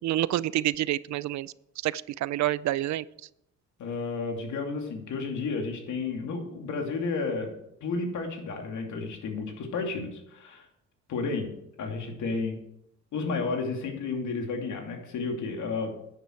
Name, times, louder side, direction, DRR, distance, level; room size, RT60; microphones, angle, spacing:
voice 1, 0.0-1.5 1.8-3.0, right 14 dB, 65° right, 19 dB, 0.5 m, -28 dB
voice 2, 3.8-7.5 7.8-10.7 11.1-12.6 13.1-15.9, left 4 dB, 75° left, 3 dB, 2.7 m, -32 dB
10.5 x 9.3 x 4.6 m, 0.80 s
cardioid pair, 90°, 30 cm